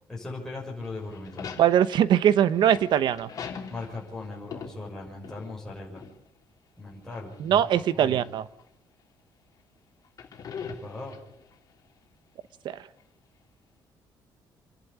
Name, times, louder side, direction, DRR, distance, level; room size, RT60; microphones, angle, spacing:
voice 1, 0.1-1.5 3.7-6.0 6.8-7.6 8.0-8.2 10.8-11.2, left 3 dB, 5° left, -4 dB, 6.4 m, -38 dB
sound 1, 0.8-5.7 6.0-6.1 7.1-7.9 8.6-8.7 10.1-11.5, left 6 dB, 45° left, 3.4 m, -41 dB
voice 2, 1.6-3.3 7.4-8.5 12.6-12.8, right 10 dB, 65° right, 15 dB, 1.1 m, -21 dB
27.5 x 11.5 x 8.5 m, 0.85 s
cardioid pair, 140°, 8 cm